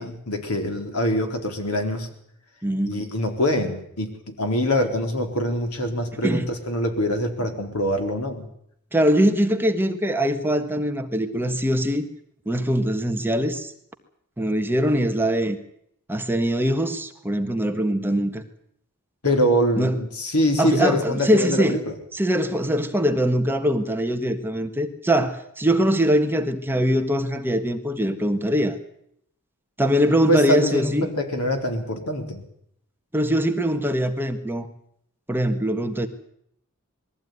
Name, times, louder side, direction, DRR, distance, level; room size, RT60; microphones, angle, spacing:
voice 1, 0.0-2.1 2.9-8.5 19.2-21.9 30.3-32.4, equal, 85° left, 4 dB, 4.2 m, -24 dB
voice 2, 2.6-3.1 6.2-6.5 8.9-12.1 12.4-13.7 14.4-15.6 16.1-18.4 19.8-19.9 20.6-21.8 22.1-28.8 29.8-31.1 33.1-34.7 35.3-36.1, equal, 10° right, 5 dB, 1.5 m, -22 dB
21.5 x 15.0 x 9.5 m, 0.72 s
head